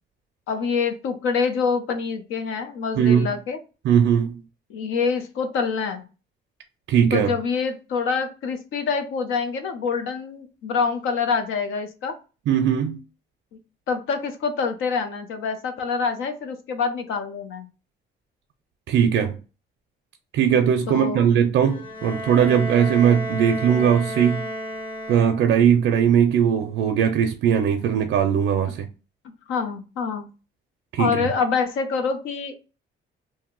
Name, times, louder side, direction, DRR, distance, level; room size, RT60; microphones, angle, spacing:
voice 1, 0.5-3.6 4.7-6.0 7.1-12.1 13.9-17.7 20.9-21.4 29.5-30.3 31.0-32.5, left 5 dB, 85° left, 0.6 m, -26 dB
voice 2, 3.0-3.3 3.8-4.4 6.9-7.3 12.5-13.0 18.9-19.4 20.3-24.5 25.1-28.9 30.9-31.3, right 8 dB, 70° right, 0.4 m, -19 dB
Bowed string instrument, 21.6-25.7, equal, 25° left, 0.8 m, -32 dB
2.7 x 2.1 x 3.6 m
cardioid pair, 90°, 20 cm